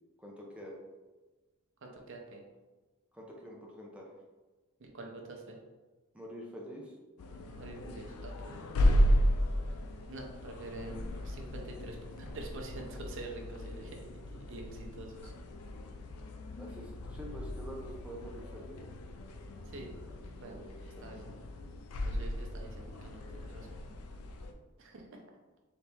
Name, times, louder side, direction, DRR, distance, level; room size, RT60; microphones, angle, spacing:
voice 1, 0.2-0.8 3.1-4.1 6.1-7.0 16.6-18.9 20.4-20.6 21.0-21.2, equal, 5° right, -3 dB, 0.7 m, -46 dB
voice 2, 1.8-2.4 4.8-5.6 7.6-8.6 10.1-15.3 19.7-20.0 20.3-21.3 22.0-23.8 24.8-25.2, right 2 dB, 60° right, 1 dB, 0.7 m, -46 dB
sound 1, 7.2-24.5, equal, 85° left, 0.4 m, -35 dB
4.1 x 3.0 x 3.5 m, 1.2 s
head